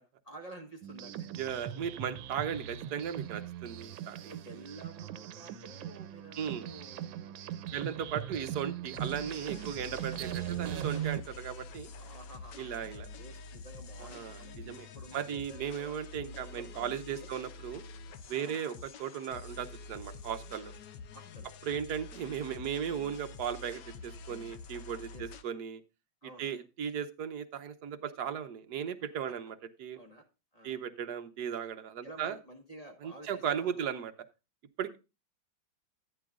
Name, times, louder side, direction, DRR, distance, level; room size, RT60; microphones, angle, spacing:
voice 1, 0.2-1.3 4.3-8.5 11.9-15.9 16.3-17.3 18.4-18.6 21.1-21.8 25.1-25.2 26.2-26.6 29.3-29.4 29.9-30.2 30.5-30.8 32.0-33.8, right 1 dB, 20° left, 2 dB, 1.4 m, -51 dB
sound 1, 0.8-11.2, right 11 dB, 85° right, 1.5 m, -39 dB
voice 2, 1.4-4.4 6.4-6.7 7.7-11.9 12.6-13.1 14.0-17.8 18.3-20.7 21.6-25.8 26.2-30.0 30.6-32.4 33.0-34.1 34.8-35.0, right 8 dB, 65° right, 8 dB, 1.3 m, -37 dB
sound 2, 8.9-25.4, left 4 dB, 70° left, 1.5 m, -47 dB
14.0 x 9.4 x 2.4 m, 0.29 s
omnidirectional pair, 2.1 m